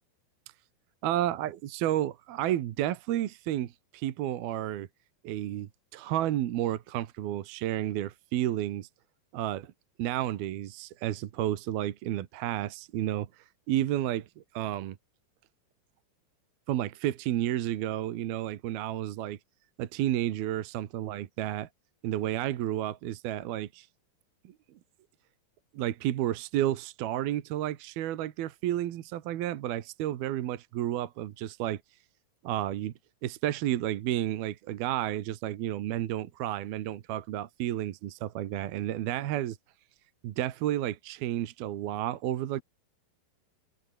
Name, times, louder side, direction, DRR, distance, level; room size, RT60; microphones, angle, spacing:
voice 1, 1.0-4.9 5.2-8.9 9.3-9.7 10.0-15.0 16.7-19.4 19.8-21.7 22.0-23.9 24.4-24.5 25.7-31.8 32.4-32.9 33.2-39.6 40.2-42.6, right 13 dB, 70° right, 3.1 m, -31 dB
open air
omnidirectional pair, 4.8 m